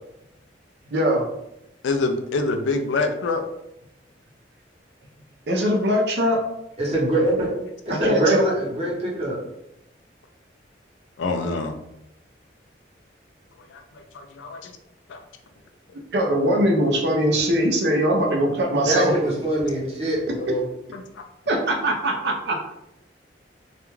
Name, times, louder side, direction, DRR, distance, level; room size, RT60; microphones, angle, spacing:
voice 1, 0.9-1.2 5.5-6.4 8.0-8.5 16.1-19.1 21.5-22.6, equal, 65° right, 1 dB, 0.5 m, -21 dB
voice 2, 1.8-3.4 11.2-11.8 14.4-14.6 15.1-15.2, left 3 dB, 85° left, 5 dB, 0.4 m, -24 dB
voice 3, 6.8-7.5 7.9-9.4 18.8-20.6, right 1 dB, 35° right, -6 dB, 0.9 m, -23 dB
2.4 x 2.2 x 3.0 m, 0.83 s
head